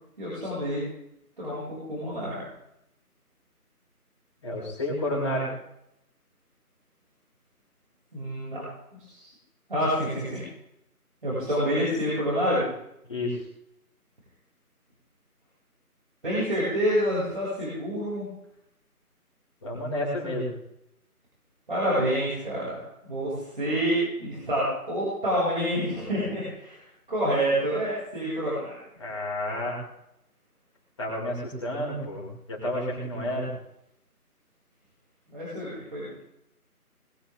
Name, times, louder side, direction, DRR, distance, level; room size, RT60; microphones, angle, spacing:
voice 1, 0.2-0.9 1.4-2.4 8.1-8.6 9.1-9.3 9.7-10.4 11.2-12.7 16.2-18.3 21.7-22.8 23.1-26.8 27.1-28.7 35.3-36.1, equal, 35° right, -9 dB, 7.6 m, -27 dB
voice 2, 4.4-5.5 13.1-13.4 19.6-20.5 29.0-29.8 31.0-33.5, left 1 dB, 20° left, -6 dB, 6.6 m, -30 dB
23.5 x 14.5 x 3.9 m, 0.78 s
figure-of-eight pair, 165°, 46 cm